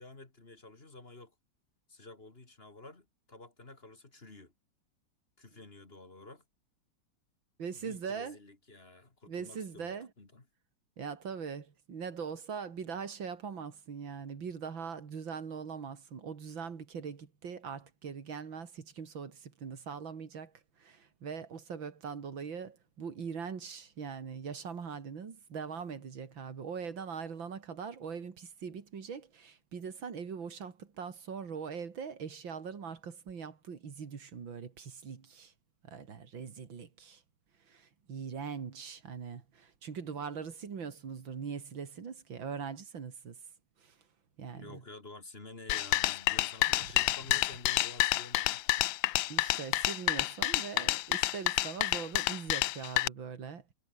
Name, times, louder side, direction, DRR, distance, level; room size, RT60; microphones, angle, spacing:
voice 1, 0.0-1.3 1.9-4.5 5.4-6.4 7.7-10.4 44.6-48.8, left 2 dB, 30° left, 2.8 m, -51 dB
voice 2, 7.6-8.4 9.3-10.1 11.0-35.5 35.8-37.2 37.7-43.4 43.8-44.0 44.4-44.8 49.3-53.6, right 6 dB, 90° right, 3.1 m, -41 dB
sound 1, 45.7-53.1, left 17 dB, 85° left, 1.4 m, -29 dB
omnidirectional pair, 2.1 m